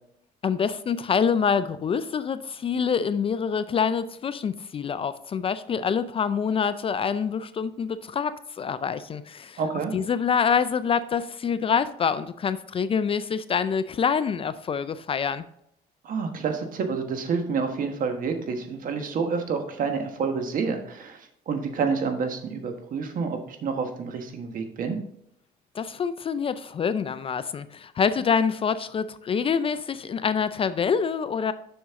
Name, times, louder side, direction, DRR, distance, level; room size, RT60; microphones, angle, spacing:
voice 1, 0.4-9.6 9.9-15.4 25.7-31.5, left 6 dB, 35° left, 13 dB, 0.4 m, -26 dB
voice 2, 9.6-9.9 16.0-25.0, right 5 dB, 55° right, 6 dB, 1.4 m, -28 dB
7.1 x 6.3 x 3.6 m, 0.74 s
cardioid pair, 110°, 17 cm